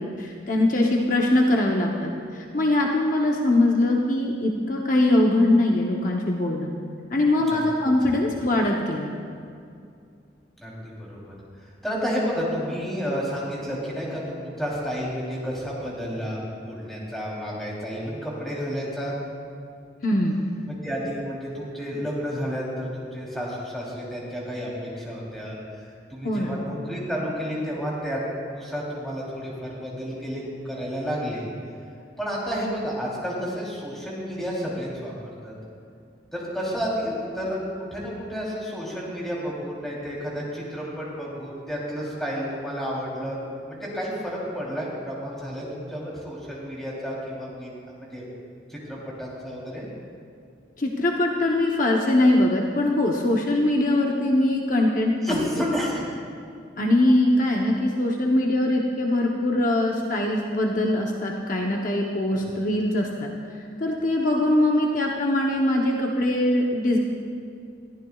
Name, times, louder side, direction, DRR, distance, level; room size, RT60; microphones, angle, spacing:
voice 1, 0.0-6.7 7.1-9.1 20.0-20.4 26.2-26.5 50.8-55.4 56.8-67.0, left 1 dB, 45° left, 0 dB, 0.8 m, -22 dB
voice 2, 10.6-19.1 20.7-25.5 26.1-31.5 32.2-35.1 35.4-35.5 36.3-43.4 43.6-47.7 48.0-48.2 48.7-49.9 55.2-56.0 62.3-62.5, equal, ahead, -6 dB, 3.2 m, -31 dB
21.5 x 14.5 x 2.4 m, 2.4 s
head